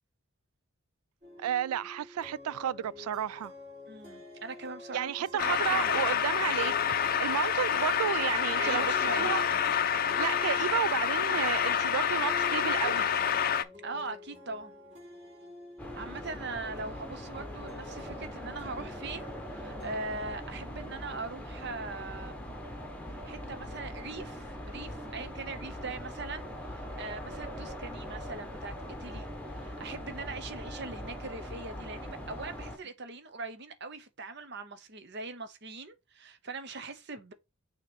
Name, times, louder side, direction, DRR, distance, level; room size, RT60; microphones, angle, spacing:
sound 1, 1.2-20.4, left 2 dB, 35° right, 3.7 m, -48 dB
voice 1, 1.4-3.5 4.9-6.7 7.0-9.4 10.2-13.1, right 10 dB, 85° right, 0.3 m, -32 dB
voice 2, 3.9-5.1 5.4-5.9 8.6-9.3 13.8-14.8 15.9-22.4 23.2-37.3, right 3 dB, 50° right, 0.9 m, -41 dB
sound 2, 5.4-13.6, left 8 dB, 40° left, 0.5 m, -28 dB
sound 3, 15.8-32.8, equal, 5° left, 1.0 m, -41 dB
6.4 x 3.0 x 5.2 m
head